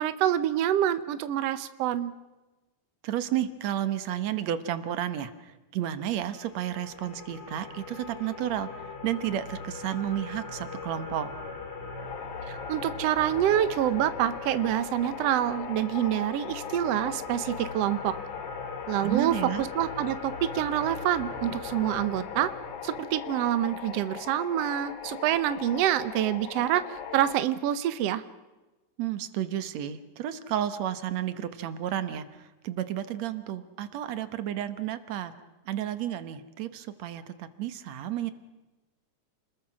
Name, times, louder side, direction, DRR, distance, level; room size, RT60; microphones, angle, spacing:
voice 1, 0.0-2.1 12.5-18.1 18.9-22.5 22.8-28.2, right 11 dB, 90° right, 12 dB, 1.4 m, -27 dB
voice 2, 3.0-11.3 19.0-19.6 29.0-35.3 35.7-38.3, right 11 dB, 60° right, 11 dB, 2.0 m, -32 dB
sound 1, 6.2-23.0, left 4 dB, 50° left, 4.2 m, -40 dB
sound 2, 12.0-27.3, left 9 dB, 85° left, 1.3 m, -40 dB
29.5 x 21.0 x 6.1 m, 1.1 s
omnidirectional pair, 4.1 m